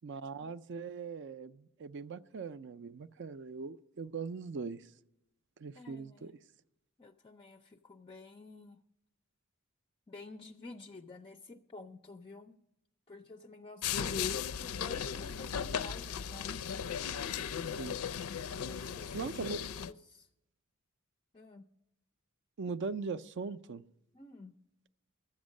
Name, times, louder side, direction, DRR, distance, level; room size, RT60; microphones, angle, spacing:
voice 1, 0.0-4.8 5.6-6.3 17.8-18.0 19.1-19.6 22.6-23.8, right 4 dB, 55° right, 15 dB, 0.4 m, -40 dB
voice 2, 5.7-6.3 7.0-8.8 10.1-12.6 13.1-16.5 18.4-19.3 19.9-20.3 21.3-21.6 24.1-24.5, left 3 dB, 25° left, 6 dB, 0.4 m, -50 dB
sound 1, 13.8-19.9, left 7 dB, 85° left, 0.4 m, -36 dB
12.5 x 8.0 x 6.4 m, 0.82 s
head